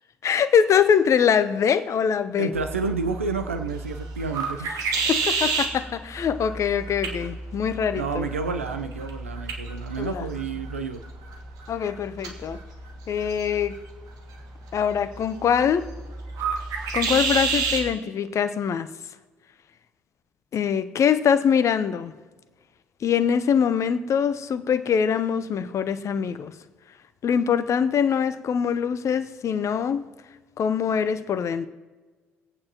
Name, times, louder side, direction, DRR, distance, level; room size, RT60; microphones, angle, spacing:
voice 1, 0.2-2.5 4.9-8.3 10.0-10.3 11.7-12.6 13.1-13.8 14.7-15.9 16.9-18.9 20.5-22.1 23.0-26.5 27.2-30.0 30.6-31.7, left 7 dB, 45° left, 0.7 m, -23 dB
voice 2, 2.4-4.7 7.9-11.0, right 4 dB, 90° right, 0.7 m, -30 dB
sound 1, 2.5-17.9, right 4 dB, 60° right, 1.7 m, -31 dB
24.0 x 8.7 x 3.0 m
hypercardioid pair, 55°, 7 cm